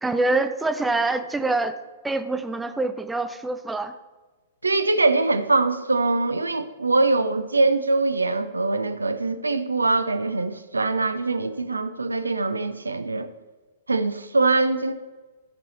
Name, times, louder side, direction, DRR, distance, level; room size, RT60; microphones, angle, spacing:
voice 1, 0.0-1.8 2.0-3.9, right 2 dB, 5° right, 9 dB, 0.5 m, -25 dB
voice 2, 4.6-13.3 13.9-14.9, right 3 dB, 80° right, 11 dB, 0.6 m, -23 dB
14.0 x 5.5 x 4.1 m, 1.3 s
figure-of-eight pair, 110°, 0 cm